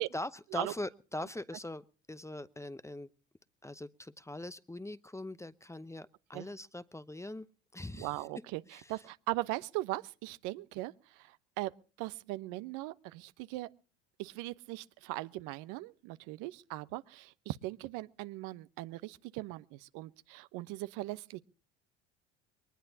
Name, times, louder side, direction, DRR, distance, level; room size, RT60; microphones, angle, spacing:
voice 1, 0.1-3.1 3.6-7.5 7.7-8.5 8.7-8.9, left 1 dB, 10° left, 0.8 m, -42 dB
voice 2, 7.9-8.6 8.9-11.7 12.0-13.7 14.2-21.4, right 19 dB, 65° right, 1.0 m, -39 dB
22.5 x 19.5 x 2.8 m
hypercardioid pair, 70°, 35 cm